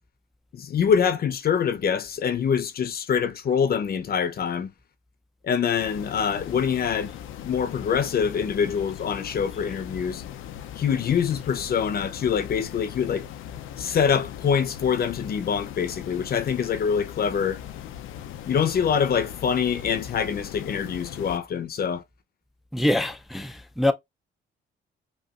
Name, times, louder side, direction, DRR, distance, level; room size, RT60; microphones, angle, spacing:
voice 1, 0.5-4.7 5.4-7.1 7.4-10.2 10.8-13.2 13.8-17.6 18.4-22.0, left 7 dB, 50° left, 0.7 m, -25 dB
sound 1, 5.8-21.4, left 10 dB, 85° left, 0.6 m, -39 dB
voice 2, 22.7-23.9, left 1 dB, ahead, 0.5 m, -24 dB
5.4 x 2.5 x 2.4 m
cardioid pair, 90°, 20 cm